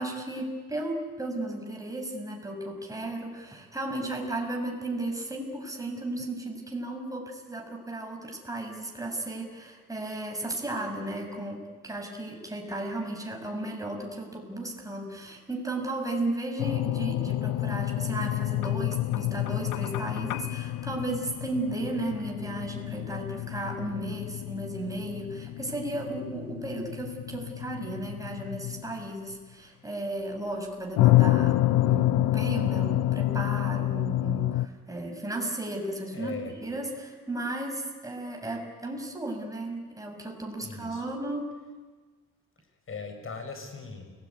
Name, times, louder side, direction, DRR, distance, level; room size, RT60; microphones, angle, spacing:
voice 1, 0.0-41.6, right 2 dB, 10° right, 2 dB, 6.4 m, -34 dB
sound 1, 16.6-29.3 31.0-34.7, left 15 dB, 85° left, 0.7 m, -28 dB
voice 2, 36.1-36.6 40.6-41.0 42.9-44.1, left 4 dB, 45° left, 6 dB, 6.6 m, -39 dB
29.0 x 20.0 x 9.6 m, 1.4 s
cardioid pair, 90°, 30 cm